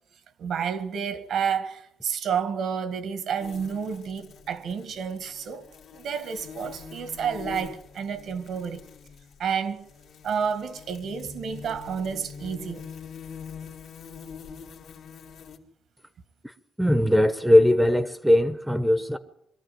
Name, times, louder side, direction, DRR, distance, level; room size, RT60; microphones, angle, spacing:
voice 1, 0.4-5.7 5.9-8.8 9.4-9.8 10.2-12.9, right 7 dB, 70° right, 1.6 m, -30 dB
sound 1, 3.4-15.6, left 6 dB, 75° left, 2.2 m, -44 dB
voice 2, 16.8-19.2, left 1 dB, 5° right, 0.8 m, -20 dB
22.5 x 14.0 x 9.3 m
cardioid pair, 145°, 0 cm